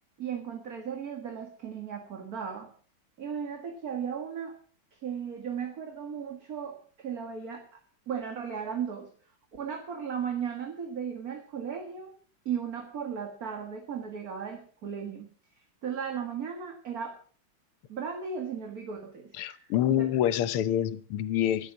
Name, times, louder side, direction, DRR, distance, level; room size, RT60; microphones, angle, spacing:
voice 1, 0.2-2.7 3.2-4.6 5.0-7.7 8.1-9.1 9.5-12.1 12.5-15.3 15.8-17.2 17.9-20.1, right 7 dB, 45° right, 2.2 m, -36 dB
voice 2, 19.4-21.7, left 11 dB, 90° left, 1.8 m, -27 dB
12.5 x 12.0 x 6.2 m
omnidirectional pair, 2.4 m